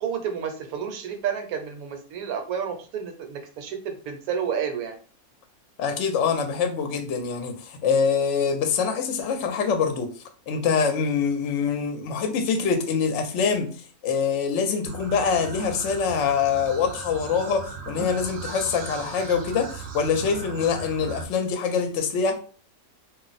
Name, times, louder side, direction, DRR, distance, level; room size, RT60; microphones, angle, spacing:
voice 1, 0.0-5.0, right 7 dB, 75° right, 1.1 m, -30 dB
voice 2, 5.8-10.1 10.5-13.7 14.0-22.3, left 6 dB, 65° left, 0.8 m, -24 dB
sound 1, 14.9-21.2, right 4 dB, 60° right, 0.7 m, -37 dB
2.5 x 2.0 x 3.9 m
omnidirectional pair, 1.6 m